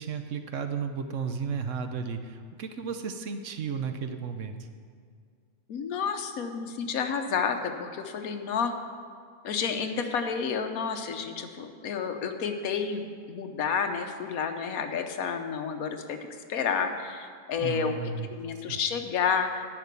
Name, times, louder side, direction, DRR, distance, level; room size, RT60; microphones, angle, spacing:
voice 1, 0.0-4.6 17.6-18.3 18.7-18.8, right 6 dB, 65° right, 7 dB, 1.0 m, -33 dB
voice 2, 5.7-8.7 9.4-16.2 16.5-18.0 18.3-19.7, left 6 dB, 75° left, 6 dB, 1.3 m, -30 dB
10.5 x 5.9 x 8.2 m, 2.1 s
omnidirectional pair, 1.5 m